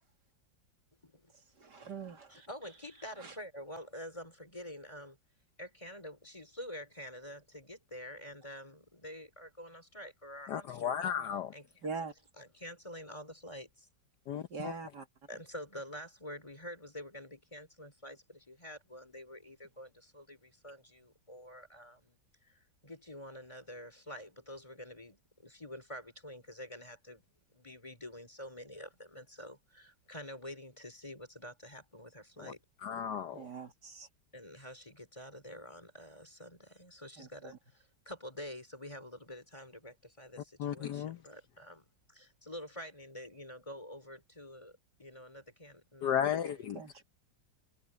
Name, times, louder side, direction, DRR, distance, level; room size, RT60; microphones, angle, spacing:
voice 1, 1.6-2.5 3.2-3.3 11.8-12.1 14.5-15.1 33.3-34.1 37.2-37.6 46.7-47.0, right 5 dB, 60° right, 2.8 m, -43 dB
voice 2, 2.3-5.2 5.6-11.0 11.5-11.9 12.4-13.7 15.3-32.6 34.3-47.0, equal, 15° left, 4.4 m, -48 dB
voice 3, 10.5-11.5 14.3-14.7 32.4-32.5 32.8-33.5 40.6-41.2 46.0-46.8, left 9 dB, 65° left, 1.4 m, -34 dB
omnidirectional pair, 2.1 m